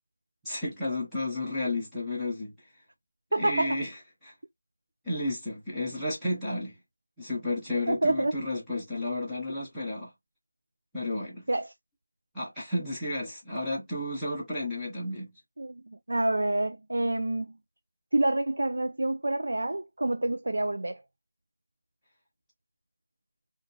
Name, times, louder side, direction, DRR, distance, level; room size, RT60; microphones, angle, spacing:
voice 1, 0.4-2.5 3.4-4.3 5.1-6.8 7.2-10.1 10.9-11.5 12.3-15.3, left 2 dB, ahead, 0.6 m, -32 dB
voice 2, 3.3-3.8 7.9-8.3 11.5-11.7 15.6-15.8 16.1-17.5 18.1-21.0, right 1 dB, 60° right, 0.3 m, -27 dB
2.7 x 2.3 x 2.6 m
figure-of-eight pair, 180°, 0 cm